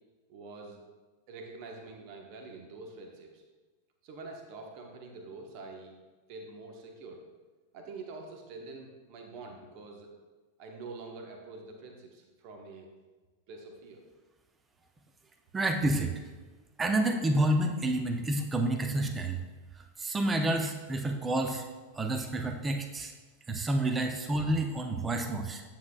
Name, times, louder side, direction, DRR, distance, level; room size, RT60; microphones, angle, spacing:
voice 1, 0.3-0.8 1.3-3.4 4.0-5.9 6.3-7.2 7.7-10.1 10.6-12.9 13.5-14.0, right 3 dB, 45° right, 2 dB, 1.2 m, -46 dB
voice 2, 15.5-16.2 16.8-19.4 20.0-21.6 21.9-23.1 23.5-25.6, right 1 dB, 15° right, 5 dB, 0.7 m, -29 dB
9.6 x 7.5 x 2.4 m, 1.3 s
figure-of-eight pair, 90°, 0 cm